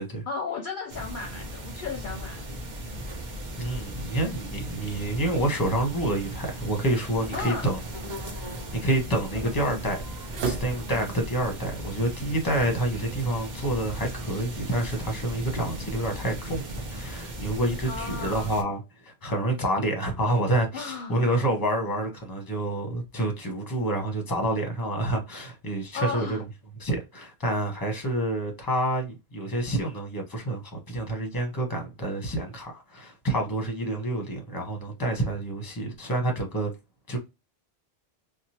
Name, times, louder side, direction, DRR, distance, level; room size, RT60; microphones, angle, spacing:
voice 1, 0.3-2.6 7.3-7.7 9.3-9.8 17.9-18.6 20.7-21.2 25.9-26.4, left 4 dB, 60° left, 0.6 m, -35 dB
sound 1, 0.9-18.6, right 1 dB, 50° right, 0.8 m, -37 dB
voice 2, 3.6-7.8 8.4-8.5 8.8-10.0 10.4-26.4 26.8-36.7 37.1-37.2, right 1 dB, 25° left, 0.8 m, -28 dB
sound 2, 7.1-11.2, right 4 dB, 85° right, 0.9 m, -40 dB
2.9 x 2.1 x 2.7 m
omnidirectional pair, 1.0 m